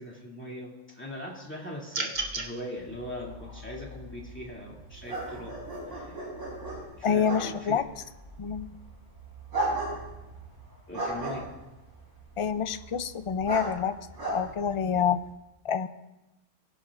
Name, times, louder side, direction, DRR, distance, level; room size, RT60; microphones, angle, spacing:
voice 1, 0.0-5.6 5.9-6.3 7.0-7.9 10.9-11.6, left 1 dB, 10° left, -3 dB, 2.6 m, -40 dB
sound 1, 1.9-2.5, right 3 dB, 40° right, 1.2 m, -31 dB
sound 2, 2.8-15.3, right 2 dB, 80° right, 5.8 m, -37 dB
voice 2, 7.0-7.8 8.4-8.7 12.4-14.0 14.3-15.2 15.6-15.9, left 7 dB, 55° left, 11 dB, 0.3 m, -27 dB
21.0 x 11.0 x 2.5 m, 1.0 s
omnidirectional pair, 1.2 m